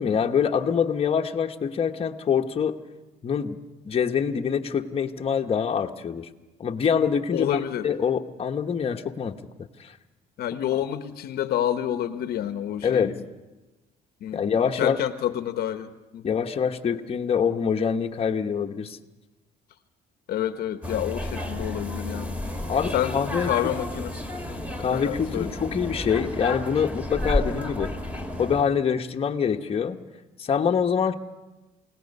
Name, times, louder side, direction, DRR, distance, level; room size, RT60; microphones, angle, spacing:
voice 1, 0.0-2.8 3.2-3.6 3.8-6.3 6.6-9.4 9.8-9.9 12.8-13.1 14.3-15.0 16.2-19.0 22.7-23.5 24.8-27.9 28.4-30.0 30.4-31.1, left 7 dB, 35° left, 4 dB, 1.2 m, -25 dB
voice 2, 7.3-7.9 10.4-13.2 14.2-16.3 20.3-22.4 22.9-24.1 24.5-24.6 24.9-25.6, left 11 dB, 70° left, 9 dB, 1.0 m, -29 dB
sound 1, 20.8-28.6, left 1 dB, 10° right, 2.6 m, -32 dB
29.0 x 17.5 x 5.4 m, 1.1 s
cardioid pair, 110°, 17 cm